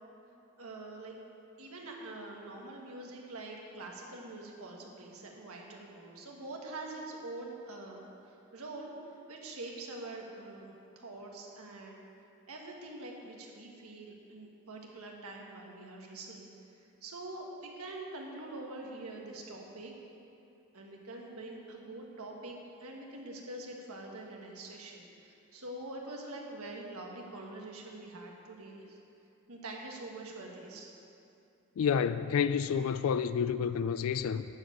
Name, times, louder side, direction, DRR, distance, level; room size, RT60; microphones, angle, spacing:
voice 1, 0.6-1.1 1.6-8.9 9.3-12.0 12.5-16.5 16.8-19.9 20.7-29.0 29.5-30.9, right 2 dB, 90° right, 1.6 m, -45 dB
voice 2, 31.8-34.5, left 7 dB, 75° left, 0.3 m, -29 dB
12.0 x 5.1 x 8.6 m
head